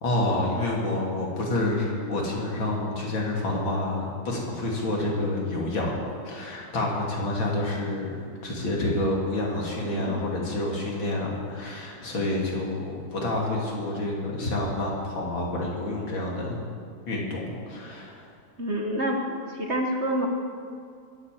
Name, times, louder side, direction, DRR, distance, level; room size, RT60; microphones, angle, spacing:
voice 1, 0.0-6.0 6.3-16.6 17.1-18.3, left 2 dB, 70° left, -2 dB, 3.5 m, -28 dB
voice 2, 18.6-20.3, right 1 dB, 40° right, 1 dB, 1.3 m, -28 dB
21.0 x 8.5 x 7.7 m, 2.3 s
omnidirectional pair, 2.3 m